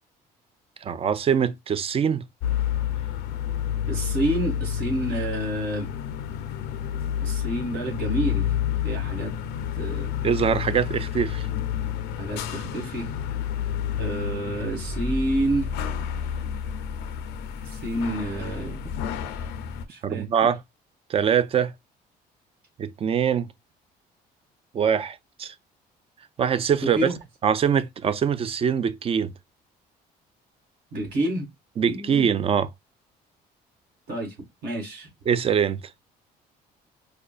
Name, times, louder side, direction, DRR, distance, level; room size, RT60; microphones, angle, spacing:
voice 1, 0.8-2.2 10.2-11.5 20.0-20.6 21.1-21.7 22.8-23.5 24.7-25.5 26.4-27.1 27.4-29.3 31.8-32.7 35.3-35.8, right 7 dB, 35° right, 0.4 m, -23 dB
sound 1, 2.4-19.8, left 9 dB, 90° left, 0.6 m, -29 dB
voice 2, 3.9-5.9 7.2-8.5 8.8-9.3 9.8-10.1 12.2-13.1 14.0-15.7 17.8-18.8 19.9-20.5 26.8-27.1 30.9-31.5 31.8-32.3 34.1-34.3 34.6-35.1, right 1 dB, 70° right, 1.9 m, -28 dB
4.9 x 2.2 x 2.3 m
cardioid pair, 110°, 17 cm